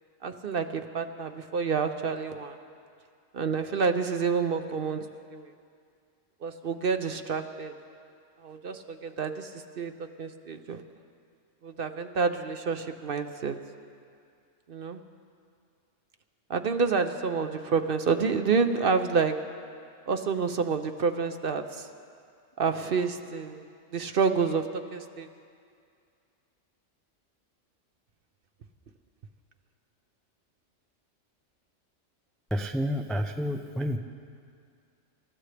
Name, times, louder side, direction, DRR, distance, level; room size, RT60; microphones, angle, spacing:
voice 1, 0.2-2.6 3.3-5.1 5.3-5.5 6.4-7.7 8.4-10.8 11.6-13.6 14.7-15.0 16.5-19.3 20.1-21.9 22.6-23.7 23.9-25.3, right 5 dB, 55° right, 8 dB, 0.8 m, -28 dB
voice 2, 32.5-34.0, equal, ahead, 5 dB, 0.3 m, -29 dB
28.0 x 14.5 x 3.4 m, 2.3 s
omnidirectional pair, 1.3 m